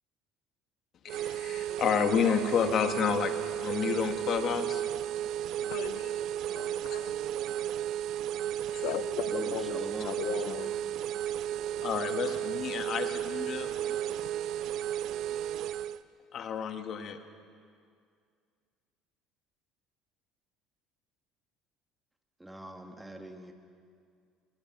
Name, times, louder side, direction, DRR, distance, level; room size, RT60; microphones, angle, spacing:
voice 1, 1.0-4.8 11.8-13.7 16.3-17.2, left 7 dB, 50° left, 7 dB, 1.8 m, -30 dB
sound 1, 1.1-16.0, right 11 dB, 65° right, 0.6 m, -33 dB
voice 2, 5.6-6.2 6.5-7.1 8.4-10.7 11.7-11.9 13.9-14.3, left 15 dB, 75° left, 13 dB, 0.5 m, -38 dB
voice 3, 9.3-10.8 22.4-23.5, right 1 dB, 10° right, 4 dB, 2.3 m, -43 dB
24.5 x 20.5 x 6.1 m, 2.2 s
supercardioid pair, 95°, 0 cm